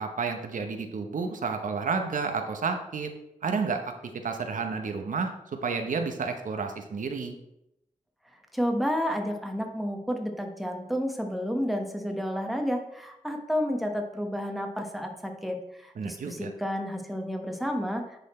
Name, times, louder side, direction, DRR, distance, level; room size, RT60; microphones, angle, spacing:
voice 1, 0.0-3.1 3.4-3.9 4.2-5.3 5.6-7.4 16.0-16.5, right 5 dB, 80° right, 5 dB, 0.9 m, -30 dB
voice 2, 8.5-18.2, equal, ahead, 3 dB, 1.2 m, -31 dB
10.0 x 4.1 x 4.3 m, 0.83 s
wide cardioid pair, 75°, 13 cm